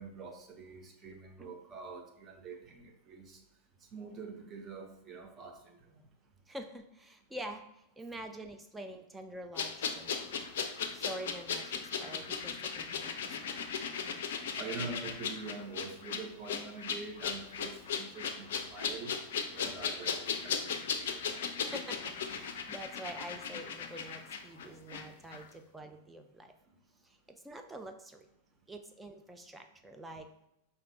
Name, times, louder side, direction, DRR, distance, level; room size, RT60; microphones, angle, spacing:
voice 1, 0.0-3.4 3.9-6.1 14.6-19.2 19.5-21.2, right 4 dB, 25° right, 3 dB, 0.7 m, -45 dB
voice 2, 6.5-10.4 10.9-13.7 21.6-26.6 27.0-28.3 28.7-30.3, right 1 dB, 10° right, 5 dB, 0.3 m, -46 dB
sound 1, 9.6-25.0 25.3-25.4, left 6 dB, 60° left, 0.4 m, -37 dB
5.0 x 2.7 x 3.2 m, 0.82 s
figure-of-eight pair, 90°, 0 cm